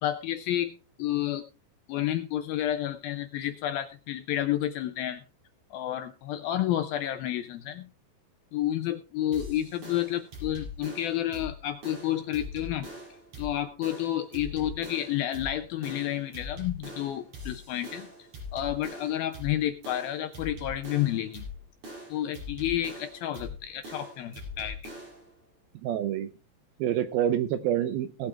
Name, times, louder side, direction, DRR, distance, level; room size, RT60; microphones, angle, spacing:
voice 1, 0.0-1.4 1.9-5.2 5.7-7.9 8.5-12.9 13.4-18.1 18.5-21.5 22.1-24.8, left 12 dB, 80° left, 9 dB, 2.2 m, -30 dB
sound 1, 9.3-25.3, left 2 dB, 45° right, 6.2 m, -42 dB
voice 2, 25.8-26.3 26.8-28.3, right 10 dB, 80° right, 10 dB, 2.3 m, -27 dB
19.0 x 8.5 x 3.4 m, 0.31 s
omnidirectional pair, 5.0 m